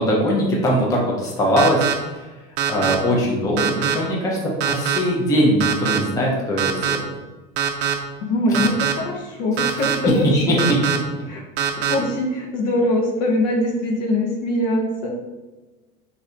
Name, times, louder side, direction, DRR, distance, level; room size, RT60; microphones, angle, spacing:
voice 1, 0.0-2.3 2.7-7.1 8.5-8.7 10.3-10.8, equal, 10° left, -3 dB, 0.5 m, -21 dB
sound 1, 1.6-1.9 2.6-2.9 3.6-3.9 4.6-5.0 5.6-6.0 6.6-7.0 7.6-7.9 8.5-8.9 9.6-9.9 10.6-11.0 11.6-11.9, right 9 dB, 50° right, 0.5 m, -22 dB
voice 2, 8.2-10.6 11.3-11.4 11.7-15.1, left 1 dB, 60° left, 0 dB, 0.9 m, -22 dB
3.0 x 2.8 x 2.5 m, 1.2 s
hypercardioid pair, 90°, 43 cm